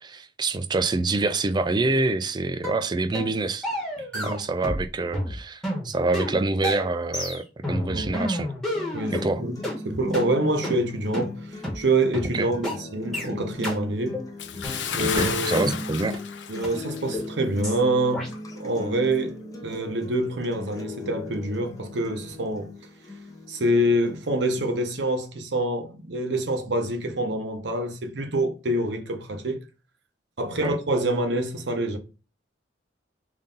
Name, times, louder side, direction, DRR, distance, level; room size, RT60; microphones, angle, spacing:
voice 1, 0.0-3.7 4.2-8.5 9.1-9.4 12.3-12.5 15.0-16.2 30.6-30.8, right 3 dB, 25° right, 0.3 m, -26 dB
sound 1, 2.6-2.8 3.1-3.3 3.6-4.9 5.1-9.3 9.6-9.8 10.1-10.3 10.6-10.8 11.1-11.3 11.6-11.8 12.1-12.3 12.6-12.8 13.1-13.3 13.6-13.8 14.1-14.3 14.6-15.8 16.1-16.2 16.6-16.7 17.1-17.3 17.6-17.8 18.1-18.3, left 1 dB, ahead, 1.1 m, -30 dB
voice 2, 7.9-8.3 8.9-14.2 15.0-15.7 16.5-19.3 19.6-22.7 23.5-29.6 30.4-32.0, right 1 dB, 75° right, 0.8 m, -26 dB
sound 2, 8.7-24.7, left 2 dB, 20° left, 0.6 m, -38 dB
Bathtub (filling or washing) / Splash splatter, 14.4-17.3 17.6-17.8 18.3-18.4, left 7 dB, 80° left, 0.5 m, -32 dB
3.7 x 2.7 x 3.7 m
head